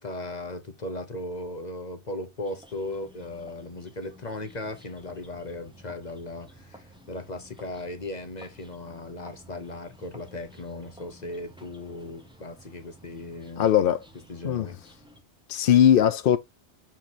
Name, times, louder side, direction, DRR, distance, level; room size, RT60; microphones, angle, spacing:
voice 1, 0.0-13.7 14.3-14.8, left 2 dB, 40° left, 1.0 m, -37 dB
sound 1, 2.4-15.2, equal, 5° right, 1.0 m, -52 dB
voice 2, 13.6-14.0 14.4-14.8 15.5-16.4, left 10 dB, 60° left, 0.7 m, -20 dB
7.0 x 4.5 x 3.0 m
omnidirectional pair, 1.2 m